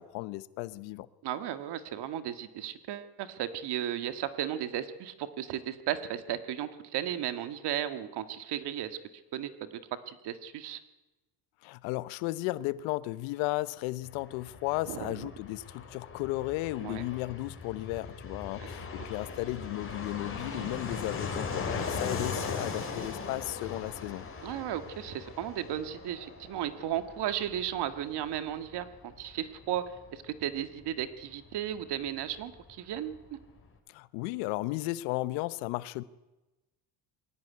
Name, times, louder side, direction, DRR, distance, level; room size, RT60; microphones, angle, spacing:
voice 1, 0.0-1.1 11.6-24.3 33.9-36.0, left 18 dB, 85° left, 1.0 m, -34 dB
voice 2, 1.2-9.0 9.3-9.8 10.1-10.8 14.9-15.3 16.8-17.0 18.6-18.7 20.5-20.7 24.4-29.8 30.1-33.4, right 11 dB, 65° right, 2.0 m, -35 dB
Fixed-wing aircraft airplane, 14.0-32.4 32.7-32.8 33.0-33.7, left 4 dB, 30° left, 4.4 m, -40 dB
22.0 x 16.5 x 9.6 m
supercardioid pair, 100°, 43 cm